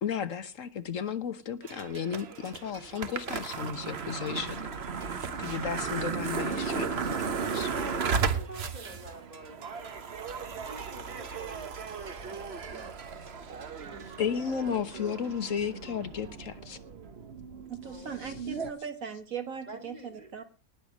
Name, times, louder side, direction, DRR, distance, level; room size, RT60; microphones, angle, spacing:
voice 1, 0.0-4.7 5.4-7.7 14.2-16.8 18.2-18.3, left 7 dB, 65° left, 1.3 m, -34 dB
sound 1, 1.6-18.7, right 5 dB, 45° right, 1.3 m, -35 dB
voice 2, 7.4-10.0 10.4-13.1 13.8-14.3 14.6-15.3 17.8-18.4 19.7-20.4, right 2 dB, 30° right, 2.3 m, -47 dB
voice 3, 17.7-20.4, right 7 dB, 65° right, 1.9 m, -39 dB
19.0 x 6.9 x 6.2 m
omnidirectional pair, 1.6 m